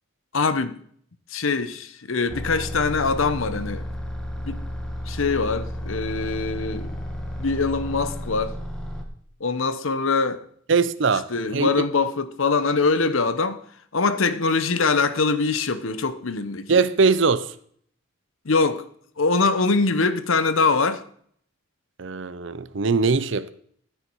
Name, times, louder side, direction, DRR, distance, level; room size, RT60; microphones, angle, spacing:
voice 1, 0.3-0.8 1.3-3.8 4.5-4.6 5.1-6.9 7.4-8.6 9.4-10.4 11.3-13.6 13.9-16.7 18.4-18.8 19.2-21.0, left 4 dB, 75° left, 0.9 m, -23 dB
sound 1, 2.3-9.0, equal, 5° left, 1.6 m, -32 dB
voice 2, 10.7-11.7 16.7-17.5 22.0-23.5, right 4 dB, 60° right, 0.6 m, -21 dB
14.0 x 7.8 x 4.7 m
head